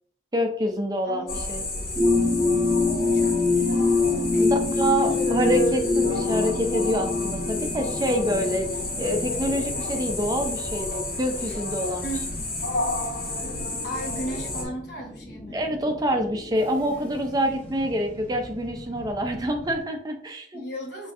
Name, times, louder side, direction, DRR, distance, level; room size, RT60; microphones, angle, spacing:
voice 1, 0.3-1.6 4.4-8.7 9.0-12.1 15.5-20.6, equal, 20° right, 4 dB, 0.4 m, -26 dB
voice 2, 1.0-1.4 3.0-3.4 4.3-4.7 5.0-5.1 12.0-12.5 13.8-15.6 20.5-21.1, right 1 dB, 70° left, -3 dB, 1.1 m, -36 dB
sound 1, 1.3-14.7, left 1 dB, 50° left, 1.2 m, -30 dB
sound 2, 2.0-19.8, left 3 dB, 10° left, 1.0 m, -27 dB
6.1 x 2.6 x 2.4 m, 0.64 s
head